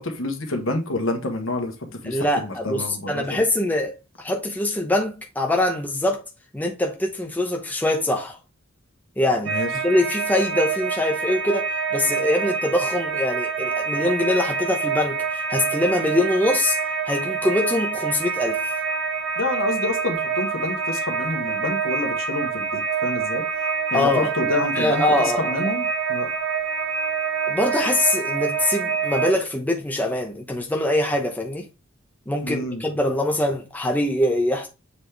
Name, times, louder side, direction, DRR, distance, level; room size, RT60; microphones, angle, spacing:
voice 1, 0.0-1.7 2.0-3.4 9.5-9.7 19.4-23.4 23.9-26.3 32.4-32.8, left 2 dB, 65° left, 1.4 m, -28 dB
voice 2, 2.0-6.2 6.5-8.4 9.2-11.7 11.9-16.8 17.1-18.6 23.9-25.7 27.5-31.7 32.3-34.7, left 1 dB, 10° left, 0.8 m, -23 dB
sound 1, 9.4-29.3, right 5 dB, 65° right, 1.5 m, -26 dB
7.2 x 4.2 x 3.4 m
head